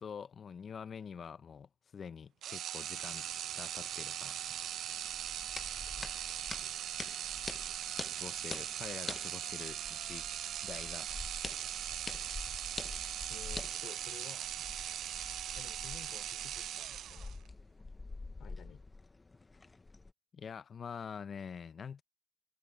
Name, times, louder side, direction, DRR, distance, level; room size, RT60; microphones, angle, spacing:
voice 1, 0.0-3.3 3.6-4.4 8.2-10.3 10.6-11.2 20.3-22.0, left 6 dB, 50° left, 0.7 m, -46 dB
sound 1, 2.4-17.5, right 11 dB, 75° right, 0.4 m, -40 dB
sound 2, 2.9-20.1, left 3 dB, 25° left, 1.0 m, -47 dB
voice 2, 6.0-6.8 13.3-14.6 15.6-17.3 18.4-18.8, left 10 dB, 70° left, 5.3 m, -54 dB
cardioid pair, 90°, 0 cm